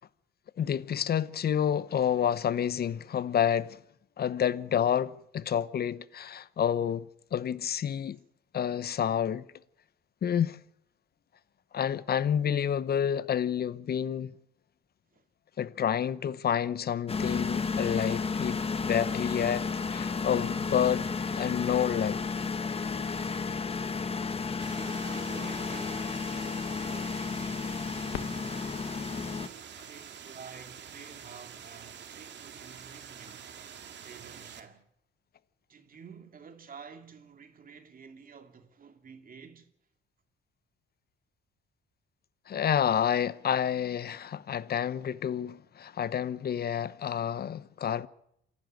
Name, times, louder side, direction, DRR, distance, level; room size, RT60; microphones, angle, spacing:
voice 1, 0.6-3.8 4.2-7.1 7.3-8.2 8.5-9.4 10.2-10.6 11.7-14.3 15.6-22.2 42.5-48.1, left 9 dB, 50° left, 0.9 m, -29 dB
sound 1, 17.1-29.5, left 5 dB, 30° left, 1.4 m, -32 dB
sound 2, 24.6-34.6, right 8 dB, 60° right, 2.3 m, -47 dB
voice 2, 24.7-26.4 26.8-27.8 29.9-33.5 34.0-34.8 35.7-39.7, right 6 dB, 45° right, 2.5 m, -50 dB
Fireworks, 28.1-30.9 31.6-31.7 32.3-32.8 34.7-34.8, left 10 dB, 85° left, 1.6 m, -45 dB
27.0 x 11.5 x 9.4 m
cardioid pair, 90°, 20 cm